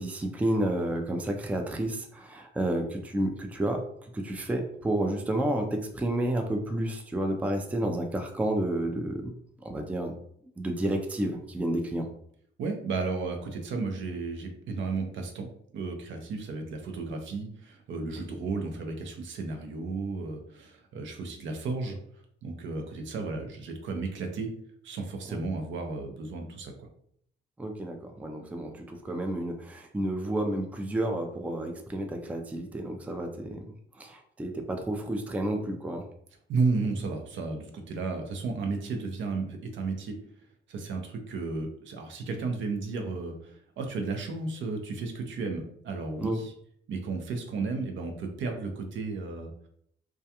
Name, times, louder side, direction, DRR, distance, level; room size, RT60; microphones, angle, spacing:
voice 1, 0.0-3.8 4.1-9.3 9.6-10.1 10.6-12.1 18.3-18.4 25.3-25.4 27.6-33.6 34.0-36.1 46.2-46.4, right 1 dB, 5° right, 4 dB, 0.3 m, -30 dB
voice 2, 12.6-15.5 15.7-22.0 22.4-24.5 24.8-26.9 36.5-40.2 40.7-46.5 46.9-49.5, right 3 dB, 70° right, 4 dB, 0.6 m, -33 dB
2.3 x 2.2 x 2.8 m, 0.67 s
cardioid pair, 90°, 20 cm